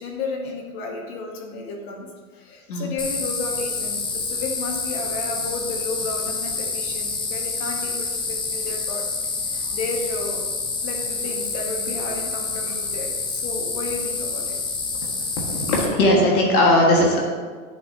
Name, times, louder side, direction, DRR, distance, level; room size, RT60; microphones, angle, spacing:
voice 1, 0.0-2.1 2.3-9.0 9.4-10.4 10.8-14.6 15.2-15.3, left 3 dB, 45° left, 1 dB, 1.2 m, -32 dB
sound 1, 3.0-15.8, left 4 dB, 10° left, 0.5 m, -28 dB
voice 2, 15.5-17.2, left 1 dB, 75° left, -2 dB, 1.7 m, -18 dB
10.5 x 4.7 x 2.8 m, 1.5 s
hypercardioid pair, 125°, 44 cm